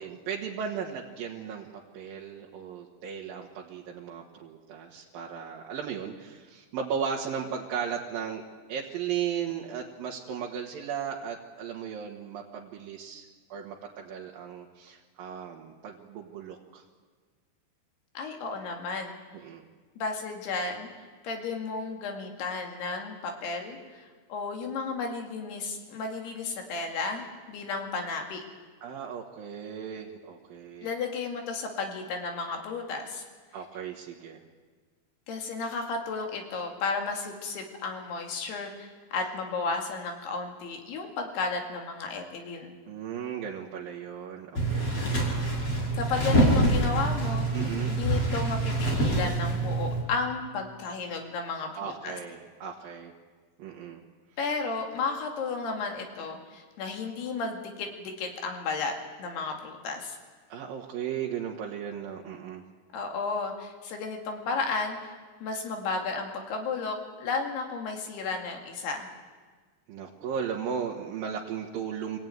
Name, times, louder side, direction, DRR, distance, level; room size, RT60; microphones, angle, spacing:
voice 1, 0.0-8.4 8.7-13.2 13.5-16.8 19.3-19.6 28.8-30.9 33.5-34.4 42.9-44.9 47.5-48.0 51.7-53.1 53.6-54.0 60.5-62.6 69.9-72.2, right 7 dB, 65° right, -1 dB, 3.0 m, -36 dB
voice 2, 18.2-19.2 20.0-20.9 21.2-28.4 30.8-33.2 35.3-42.8 45.9-52.2 54.4-58.9 59.2-60.2 62.9-65.1 65.4-69.1, left 4 dB, 75° left, 3 dB, 4.3 m, -33 dB
sound 1, 44.6-50.0, right 1 dB, 35° left, 6.3 m, -26 dB
25.0 x 16.5 x 9.4 m, 1.5 s
omnidirectional pair, 4.7 m